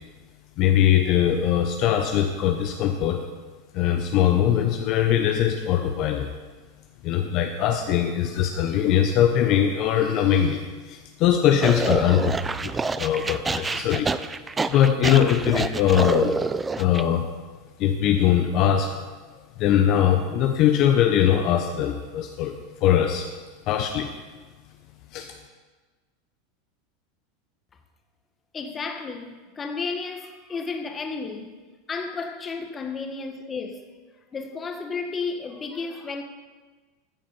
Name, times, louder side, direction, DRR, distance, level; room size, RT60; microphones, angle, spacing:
voice 1, 0.6-3.2 3.7-6.3 7.0-10.6 10.9-14.1 14.7-16.3 16.8-17.3 17.8-19.0 19.6-22.5 22.8-23.3 23.7-24.1 25.1-25.3, left 10 dB, 50° left, 0.8 m, -21 dB
sound 1, 11.6-17.0, right 4 dB, 15° right, 0.4 m, -27 dB
voice 2, 28.5-31.5 31.9-33.9 34.3-36.2, left 4 dB, 25° left, 1.2 m, -32 dB
14.5 x 5.0 x 5.4 m
hypercardioid pair, 105°, 0 cm